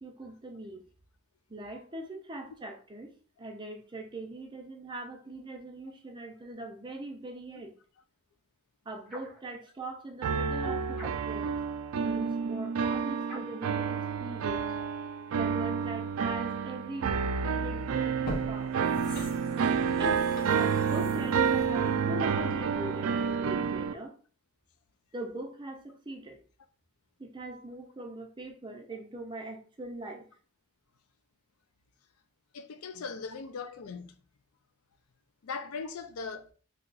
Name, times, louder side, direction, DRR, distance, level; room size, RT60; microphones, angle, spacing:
voice 1, 0.0-0.8 1.5-3.1 3.4-7.7 8.9-11.5 12.0-14.6 15.3-18.8 20.0-24.1 25.1-26.4 27.2-30.3, right 1 dB, 20° right, 0.5 m, -41 dB
sound 1, 9.1-9.4 10.9-11.5 13.2-13.7, right 1 dB, ahead, 1.1 m, -45 dB
sound 2, 10.2-23.9, right 6 dB, 70° right, 0.3 m, -29 dB
sound 3, 17.5-17.6 18.1-22.8 23.2-23.3, left 1 dB, 40° left, 0.8 m, -43 dB
voice 2, 32.5-34.2 35.4-36.5, left 5 dB, 80° left, 0.4 m, -39 dB
2.8 x 2.3 x 3.9 m
head